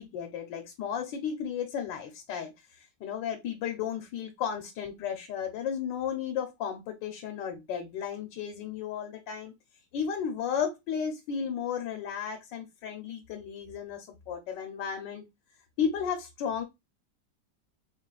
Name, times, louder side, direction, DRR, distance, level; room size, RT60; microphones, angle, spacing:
voice 1, 0.0-9.5 9.9-15.2 15.8-16.6, left 7 dB, 80° left, 1.4 m, -34 dB
4.0 x 3.8 x 2.4 m
omnidirectional pair, 2.0 m